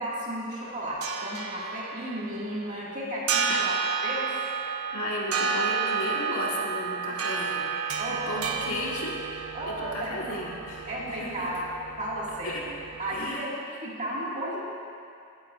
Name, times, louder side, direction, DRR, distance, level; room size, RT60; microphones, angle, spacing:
voice 1, 0.0-3.8 4.0-4.3 8.0-8.6 9.5-10.4 10.9-11.6 12.0-12.6 13.0-14.6, right 1 dB, 35° right, -6 dB, 2.1 m, -34 dB
sound 1, 0.6-13.3, right 6 dB, 90° right, 0.7 m, -32 dB
voice 2, 4.9-7.8 8.1-11.5 12.4-12.7 13.1-13.5, left 1 dB, 85° left, -3 dB, 1.7 m, -35 dB
15.0 x 9.3 x 2.5 m, 2.5 s
head